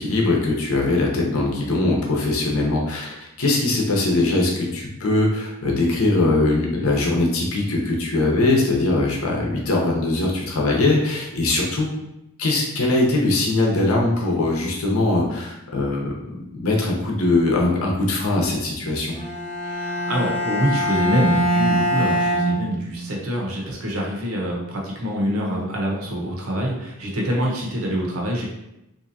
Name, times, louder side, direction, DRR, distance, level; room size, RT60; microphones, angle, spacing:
voice 1, 0.0-11.9 12.4-19.2, left 2 dB, 70° left, -1 dB, 0.8 m, -21 dB
Bowed string instrument, 19.1-23.3, equal, 25° left, 1.1 m, -23 dB
voice 2, 19.6-28.4, equal, 65° right, -2 dB, 0.8 m, -25 dB
3.4 x 2.7 x 2.7 m, 0.88 s
head